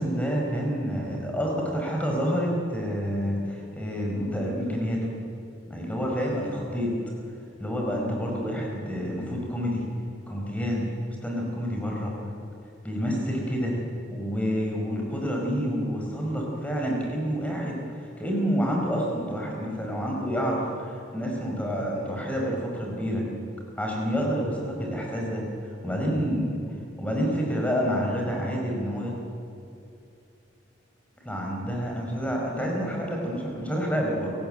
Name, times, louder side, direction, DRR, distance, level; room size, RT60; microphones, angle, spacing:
voice 1, 0.0-5.1 5.7-6.9 7.6-9.9 10.3-10.9 11.2-12.2 12.8-13.8 14.1-23.2 23.8-25.5 25.8-26.6 27.0-29.1 31.2-34.3, equal, 5° left, -1 dB, 5.3 m, -28 dB
29.5 x 17.0 x 9.2 m, 2.6 s
head